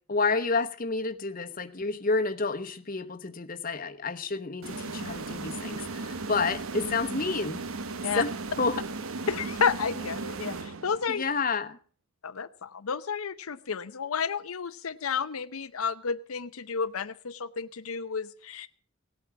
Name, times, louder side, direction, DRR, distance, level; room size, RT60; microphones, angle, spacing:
voice 1, 0.1-7.6 8.1-8.3 8.6-8.7 11.1-11.8, left 4 dB, 40° left, 7 dB, 1.0 m, -29 dB
sound 1, 4.6-11.2, right 3 dB, 70° right, 1.0 m, -36 dB
voice 2, 9.3-11.2 12.2-18.7, left 6 dB, 75° left, 9 dB, 0.7 m, -31 dB
17.5 x 8.6 x 7.1 m, 0.42 s
head